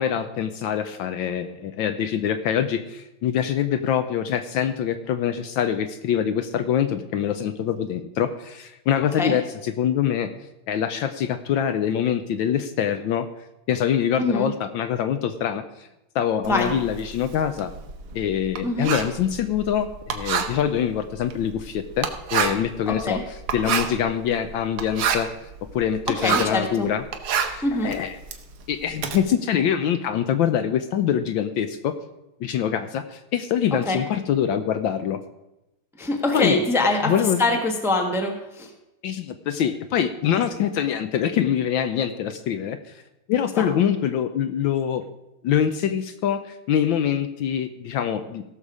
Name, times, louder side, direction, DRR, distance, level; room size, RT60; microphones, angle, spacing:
voice 1, 0.0-10.3 10.7-13.3 13.7-15.9 16.1-17.7 18.1-23.2 23.5-25.3 25.7-27.0 27.4-28.2 28.7-31.9 32.4-35.2 36.3-36.6 37.0-37.4 39.0-42.9 43.3-45.0 45.4-48.4, left 9 dB, 75° left, 10 dB, 1.2 m, -24 dB
voice 2, 14.2-14.5 16.5-16.7 18.6-18.9 22.9-23.2 26.1-26.9 27.6-27.9 33.8-34.0 36.0-37.1 37.4-38.7 43.6-43.7, left 2 dB, ahead, 3 dB, 0.8 m, -24 dB
Writing, 16.4-26.6 27.0-29.2, right 7 dB, 75° right, 1.8 m, -28 dB
16.5 x 6.6 x 4.8 m, 0.94 s
omnidirectional pair, 2.4 m